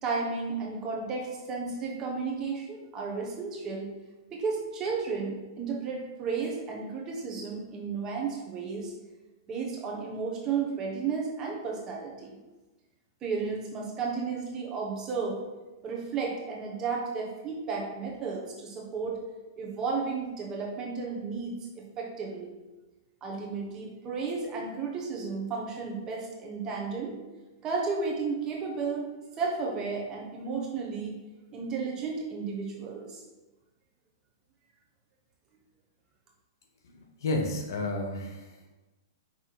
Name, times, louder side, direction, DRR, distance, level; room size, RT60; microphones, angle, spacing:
voice 1, 0.0-3.9 4.3-8.9 9.5-12.4 13.2-15.4 15.8-19.2 19.6-22.5 23.2-27.1 27.6-29.1 29.4-31.2 31.5-33.2, right 4 dB, 25° right, -1 dB, 1.3 m, -33 dB
voice 2, 36.9-38.7, left 2 dB, 70° left, 3 dB, 1.2 m, -32 dB
6.0 x 3.3 x 4.8 m, 1.1 s
hypercardioid pair, 145°, 2 cm